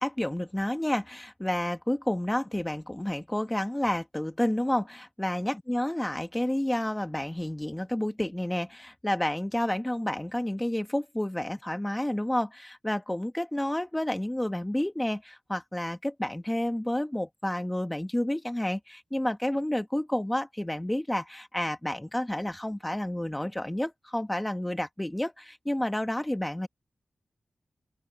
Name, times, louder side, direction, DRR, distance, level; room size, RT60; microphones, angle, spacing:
voice 1, 0.0-26.7, left 1 dB, 10° left, 1.6 m, -30 dB
open air
cardioid pair, 55°, 0 cm